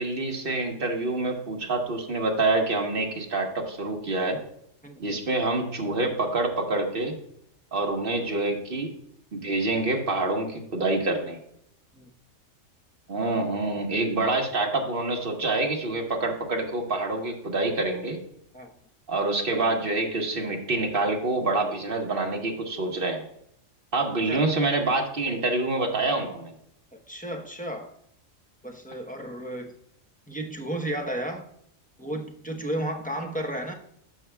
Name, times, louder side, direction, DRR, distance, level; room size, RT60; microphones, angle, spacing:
voice 1, 0.0-4.4 5.0-7.1 7.7-8.9 9.3-11.4 13.1-18.2 19.1-23.2 23.9-26.5, right 2 dB, 45° right, 1 dB, 1.5 m, -26 dB
voice 2, 4.8-5.2 11.9-12.1 18.5-18.7 24.3-24.4 27.1-27.9 28.6-29.8 30.3-31.5 32.0-33.7, right 1 dB, 10° left, 0 dB, 0.7 m, -33 dB
13.5 x 5.6 x 2.3 m, 0.72 s
omnidirectional pair, 1.3 m